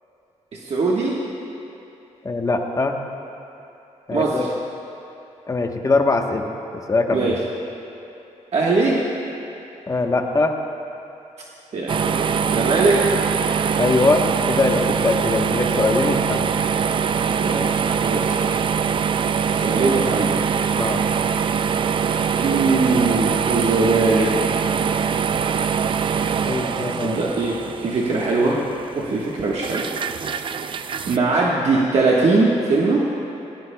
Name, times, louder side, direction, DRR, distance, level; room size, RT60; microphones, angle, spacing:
voice 1, 0.5-1.2 4.1-4.4 7.1-7.4 8.5-9.0 11.7-13.0 17.3-17.7 18.0-18.4 19.5-20.4 22.4-24.3 27.0-28.6 28.9-29.9 30.2-30.3 31.0-33.1, right 3 dB, 60° right, -4 dB, 1.3 m, -21 dB
voice 2, 2.2-3.0 4.1-4.5 5.5-6.5 6.9-7.3 9.9-10.6 13.8-16.5 20.8-21.0 26.4-27.2, left 3 dB, 25° left, 3 dB, 1.0 m, -21 dB
sound 1, 11.9-31.2, right 6 dB, 45° right, 0.4 m, -23 dB
18.5 x 17.5 x 2.2 m, 2.9 s
cardioid pair, 105°, 12 cm